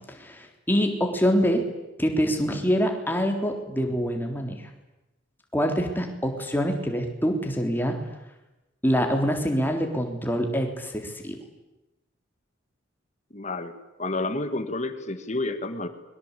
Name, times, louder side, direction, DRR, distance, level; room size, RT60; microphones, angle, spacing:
voice 1, 0.1-1.6 2.0-4.6 5.5-7.9 8.8-11.4, equal, 10° left, 3 dB, 3.6 m, -25 dB
voice 2, 13.3-15.9, left 2 dB, 35° left, 9 dB, 2.0 m, -30 dB
30.0 x 23.0 x 8.4 m, 1.0 s
head